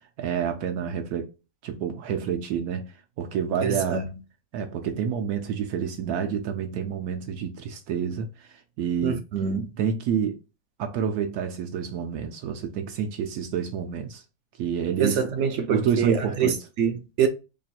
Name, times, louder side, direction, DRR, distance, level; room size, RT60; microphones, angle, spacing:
voice 1, 0.2-1.3 1.6-4.1 4.5-9.2 9.8-10.4 10.8-14.2 14.6-15.2 15.7-16.6, right 7 dB, 80° right, 1.1 m, -28 dB
voice 2, 3.6-4.0 9.0-9.7 15.0-17.3, right 7 dB, 65° right, 0.7 m, -25 dB
3.0 x 2.4 x 4.1 m
omnidirectional pair, 1.6 m